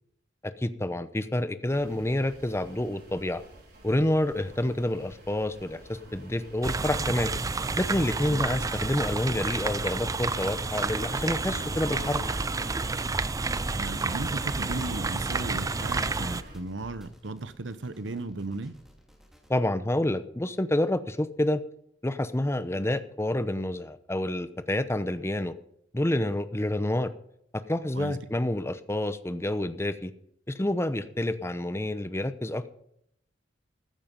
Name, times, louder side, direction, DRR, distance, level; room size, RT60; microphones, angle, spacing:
voice 1, 0.4-3.4 3.8-7.3 7.8-12.2 19.5-21.6 22.0-25.5 25.9-27.1 27.5-30.1 30.5-32.7, left 1 dB, 15° left, 12 dB, 0.8 m, -28 dB
sound 1, 1.7-16.6, equal, 55° right, 4.7 m, -46 dB
sound 2, 6.6-16.4, right 3 dB, 20° right, 0.4 m, -30 dB
voice 2, 8.3-8.6 13.7-18.7 27.9-28.2, right 2 dB, 75° right, 13 dB, 1.0 m, -36 dB
sound 3, 10.3-19.5, equal, ahead, 2.7 m, -50 dB
14.5 x 9.2 x 5.4 m, 0.73 s
head